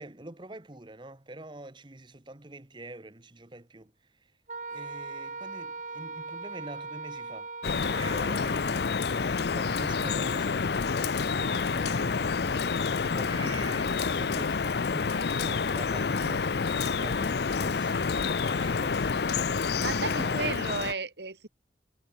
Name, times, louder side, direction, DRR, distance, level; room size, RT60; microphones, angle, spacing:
voice 1, 0.0-4.3 4.7-7.5 7.9-11.3 11.6-12.7 13.0-19.4 20.0-20.5, right 2 dB, 25° right, 1.1 m, -45 dB
Wind instrument woodwind instrument, 4.5-8.9, right 4 dB, 45° right, 1.8 m, -40 dB
Drip, 7.6-20.9, left 5 dB, 65° left, 0.6 m, -28 dB
voice 2, 11.3-11.9 19.8-21.5, right 4 dB, 70° right, 1.9 m, -35 dB
head